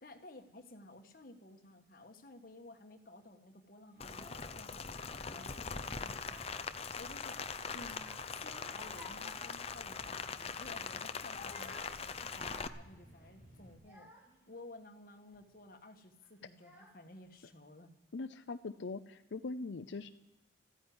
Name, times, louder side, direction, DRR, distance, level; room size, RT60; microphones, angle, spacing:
voice 1, 0.0-14.1 14.5-17.9, left 2 dB, 50° left, 5 dB, 1.4 m, -55 dB
Child speech kid speaking / Crying sobbing, 3.9-4.5 5.1-5.8 6.1-6.9 7.4-10.2 10.6-10.8 11.3-14.5 15.1-15.5 16.2-16.3 16.6-17.3, equal, 10° right, 2.8 m, -57 dB
Rain, 4.0-12.7, left 5 dB, 35° left, 0.6 m, -42 dB
sound 1, 4.0-13.8, equal, 45° right, 6.1 m, -59 dB
voice 2, 18.1-20.1, left 3 dB, 85° left, 9 dB, 0.6 m, -41 dB
14.0 x 9.8 x 9.6 m, 0.99 s
head